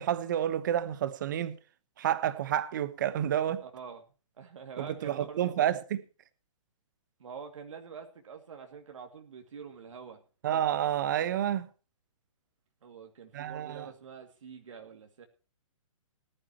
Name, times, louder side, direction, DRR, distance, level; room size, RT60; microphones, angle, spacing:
voice 1, 0.0-1.6 2.0-3.6 4.8-6.0 10.4-11.7 13.3-13.9, right 10 dB, 35° right, 1.1 m, -29 dB
voice 2, 3.6-4.0 4.4-5.5 7.2-10.2 12.8-15.2, right 6 dB, 65° right, 2.4 m, -46 dB
19.0 x 12.0 x 3.0 m
hypercardioid pair, 170°, 17 cm